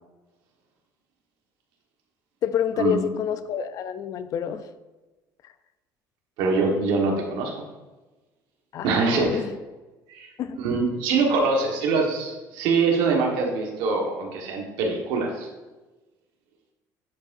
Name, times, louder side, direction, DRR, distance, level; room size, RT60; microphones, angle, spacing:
voice 1, 2.4-4.7 5.4-5.5 8.7-9.6 10.4-10.6, left 9 dB, 50° left, 12 dB, 0.5 m, -28 dB
voice 2, 6.4-7.6 8.8-9.4 10.1-10.3 10.6-15.5, right 4 dB, 85° right, 1 dB, 1.5 m, -24 dB
10.5 x 4.9 x 2.7 m, 1.2 s
cardioid pair, 120°, 8 cm